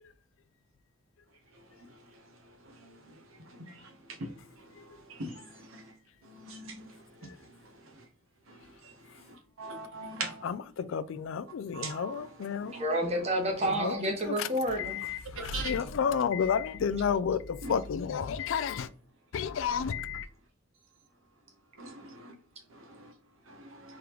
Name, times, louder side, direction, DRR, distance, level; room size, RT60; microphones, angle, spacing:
voice 1, 6.2-6.9 9.6-10.5 11.7-12.3 12.6-12.8 13.8-13.9 15.4-15.7 17.6-17.7 21.8-22.3, right 3 dB, 75° right, 0.9 m, -39 dB
voice 2, 10.4-12.7 13.8-13.9 14.4-14.5 14.8-18.9 19.3-20.3, left 7 dB, 70° left, 0.3 m, -31 dB
voice 3, 12.7-15.0, equal, 30° right, 1.1 m, -29 dB
3.8 x 3.2 x 2.9 m
head